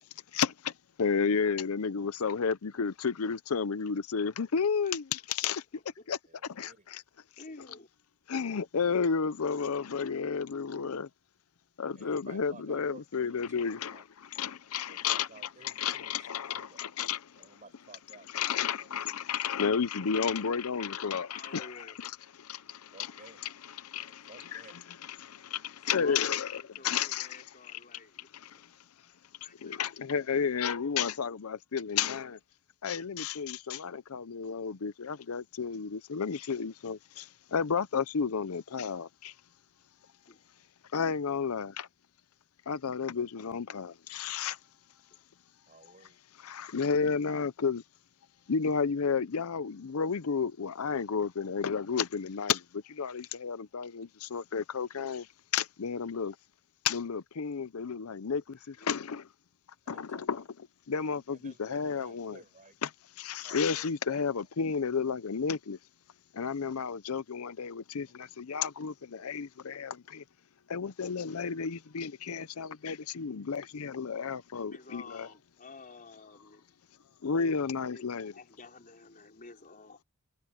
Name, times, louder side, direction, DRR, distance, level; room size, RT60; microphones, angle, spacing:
voice 1, 0.3-0.7 1.0-5.6 6.1-6.2 6.5-7.0 7.6-7.7 8.3-11.1 11.8-17.2 18.3-22.2 22.5-27.5 27.7-27.8 28.4-28.5 29.6-32.4 32.8-39.3 40.9-41.9 42.7-44.6 46.4-47.8 48.5-52.6 52.9-55.3 55.5-56.3 56.8-59.2 59.9-60.4 60.9-62.4 62.8-62.9 63.2-65.8 66.3-70.2 70.7-75.3 77.2-78.3, left 6 dB, 70° left, 0.6 m, -32 dB
voice 2, 4.8-6.1 7.4-7.9 21.3-22.0 25.7-26.5 26.8-28.3 29.4-29.9 40.3-40.4 55.1-55.3 58.8-58.9 74.5-76.6 77.8-80.0, left 3 dB, 40° left, 4.3 m, -50 dB
voice 3, 6.3-6.9 11.9-14.0 14.8-16.9 17.4-18.9 22.9-23.4 24.0-25.1 26.0-26.1 45.7-46.2 59.8-60.4 60.9-62.8 63.4-64.5, right 3 dB, 35° right, 6.7 m, -55 dB
head